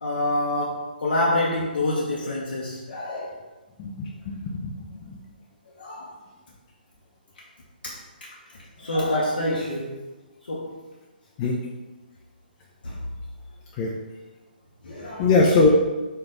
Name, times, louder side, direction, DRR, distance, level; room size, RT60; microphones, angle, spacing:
voice 1, 0.0-3.4 5.8-6.1 7.8-8.0 8.8-10.0 10.5-10.7 12.8-13.0 14.8-15.5, left 1 dB, 70° left, -5 dB, 0.8 m, -27 dB
voice 2, 3.8-5.2 11.4-11.6 13.7-13.9 15.2-15.7, left 3 dB, 25° left, -4 dB, 0.4 m, -22 dB
4.6 x 2.5 x 3.8 m, 1.2 s
figure-of-eight pair, 135°, 5 cm